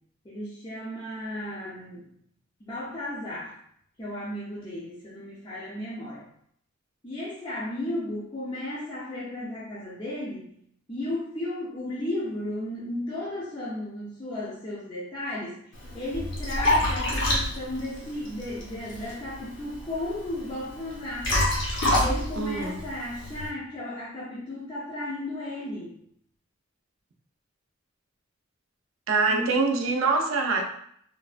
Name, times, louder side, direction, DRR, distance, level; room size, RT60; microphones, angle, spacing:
voice 1, 0.2-2.1 2.6-3.6 4.0-6.3 7.0-10.5 10.9-21.3 21.9-26.0 29.1-29.6, left 1 dB, 25° left, -8 dB, 0.5 m, -34 dB
Liquid, 15.7-23.5, left 1 dB, 65° left, 0.8 m, -28 dB
voice 2, 22.4-22.8 29.1-30.6, right 4 dB, 80° right, 2 dB, 0.4 m, -24 dB
3.2 x 2.1 x 2.4 m, 0.67 s
head